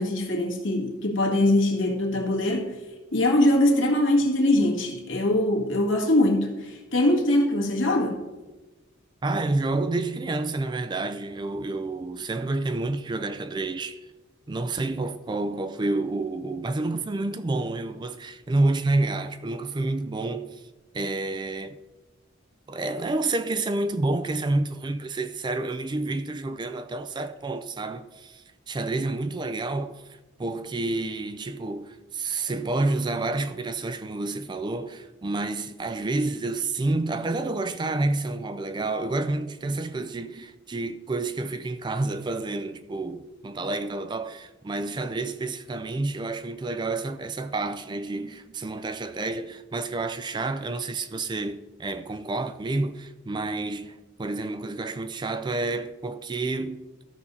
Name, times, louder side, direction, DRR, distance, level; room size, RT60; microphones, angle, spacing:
voice 1, 0.0-2.7 3.1-8.2, left 1 dB, 70° left, 1.8 m, -22 dB
voice 2, 9.2-14.0 14.5-20.6 20.9-21.8 22.7-30.0 30.4-56.8, right 2 dB, 20° right, 0.3 m, -29 dB
13.5 x 5.3 x 4.2 m
head